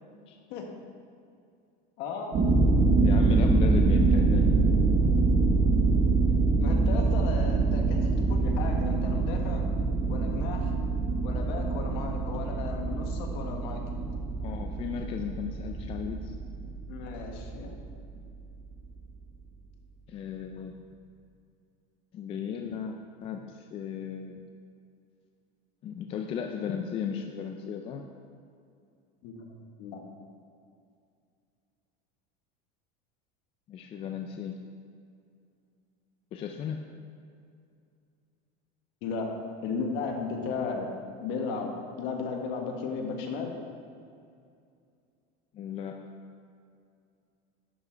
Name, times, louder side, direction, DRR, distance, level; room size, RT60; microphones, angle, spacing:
voice 1, 2.0-2.3 6.6-9.6 10.0-10.7 11.2-13.8 16.9-17.8 29.2-29.5 29.8-30.0 39.0-39.3 39.6-40.9 41.2-41.7 41.9-43.5, left 5 dB, 55° left, 2 dB, 1.4 m, -35 dB
sound 1, 2.3-18.1, right 3 dB, 30° right, 1.3 m, -25 dB
voice 2, 3.0-4.5 14.4-16.3 20.1-20.8 22.1-24.5 25.8-28.1 33.7-34.6 36.3-36.8 45.5-46.0, left 7 dB, 25° left, 4 dB, 0.4 m, -35 dB
11.0 x 6.1 x 4.5 m, 2.4 s
supercardioid pair, 155°, 21 cm